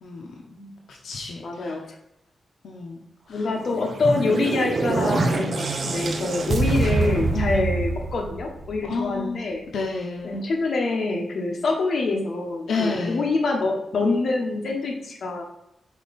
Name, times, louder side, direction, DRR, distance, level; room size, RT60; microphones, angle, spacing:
voice 1, 0.9-1.7 2.6-3.4 6.9-7.6 8.9-10.5 12.7-13.3, left 4 dB, 90° left, -1 dB, 0.8 m, -31 dB
voice 2, 1.4-1.8 3.3-9.6 10.2-15.4, left 3 dB, 65° left, 0 dB, 1.2 m, -25 dB
sound 1, 3.6-9.0, right 3 dB, 50° right, 0.6 m, -25 dB
5.3 x 4.2 x 4.2 m, 0.81 s
wide cardioid pair, 120°, 0 cm